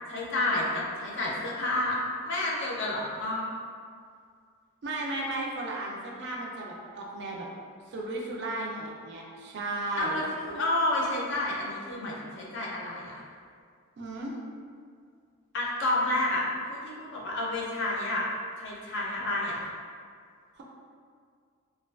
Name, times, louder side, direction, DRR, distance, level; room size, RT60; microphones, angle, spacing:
voice 1, 0.1-3.5 10.0-13.2 15.5-18.3 18.6-19.7, left 2 dB, 55° left, -4 dB, 0.4 m, -30 dB
voice 2, 4.8-7.5 7.9-10.2 14.0-14.3 20.5-20.6, right 2 dB, 55° right, -2 dB, 0.3 m, -35 dB
2.4 x 2.3 x 2.3 m, 2.1 s
head